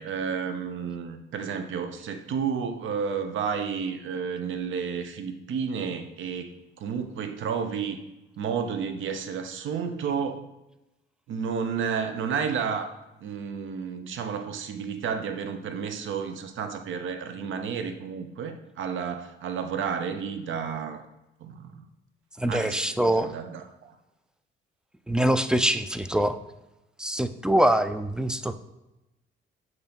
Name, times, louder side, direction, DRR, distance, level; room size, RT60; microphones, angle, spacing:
voice 1, 0.0-6.5 6.8-8.0 8.4-10.4 11.3-12.9 13.2-21.0 21.4-21.8 22.5-24.0, right 6 dB, 70° right, 7 dB, 0.7 m, -31 dB
voice 2, 22.4-23.3 25.1-26.4 27.0-28.6, right 1 dB, 5° right, 11 dB, 0.3 m, -24 dB
7.0 x 2.7 x 5.2 m, 0.96 s
cardioid pair, 85°, 21 cm